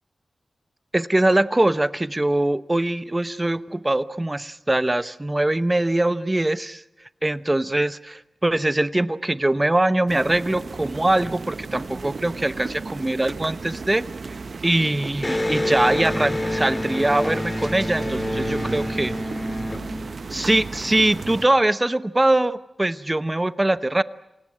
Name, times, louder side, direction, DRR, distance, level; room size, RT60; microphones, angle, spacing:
voice 1, 0.9-6.8 7.2-14.0 14.6-19.1 20.3-24.0, right 1 dB, 20° right, 14 dB, 0.9 m, -22 dB
sound 1, 10.1-21.5, right 4 dB, 60° right, 1.0 m, -34 dB
Electric guitar, 15.2-20.7, left 1 dB, 25° left, 2.4 m, -27 dB
28.0 x 18.0 x 9.6 m, 0.91 s
wide cardioid pair, 90°, 0 cm